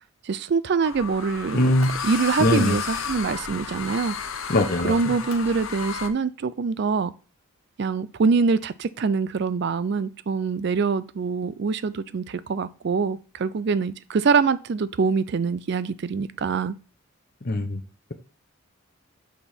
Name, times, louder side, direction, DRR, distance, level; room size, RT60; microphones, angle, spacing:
voice 1, 0.2-1.6 2.0-4.2 4.8-7.1 7.8-16.8, right 5 dB, 50° right, 0.4 m, -24 dB
sound 1, 0.8-6.1, left 6 dB, 70° left, 0.8 m, -32 dB
voice 2, 1.5-1.9 2.4-2.8 4.5-5.2 17.4-17.8, left 1 dB, 45° left, 0.9 m, -22 dB
6.3 x 5.3 x 4.3 m
head